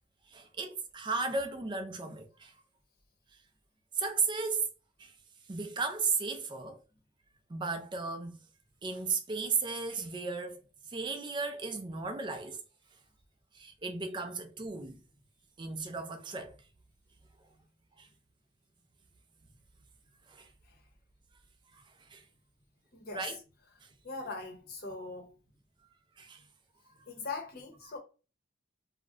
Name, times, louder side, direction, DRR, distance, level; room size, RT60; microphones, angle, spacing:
voice 1, 0.3-2.5 3.9-4.7 5.0-5.1 5.5-6.8 7.5-8.4 8.8-10.6 10.9-12.6 13.5-15.0 15.6-16.6 18.0-18.1 20.3-20.5 21.7-21.8 22.1-22.2 23.1-23.4 26.2-26.4, right 4 dB, 25° right, 0.4 m, -35 dB
voice 2, 22.9-23.3 24.0-25.3 27.1-28.0, left 3 dB, 50° left, 0.7 m, -41 dB
2.4 x 2.0 x 3.6 m
head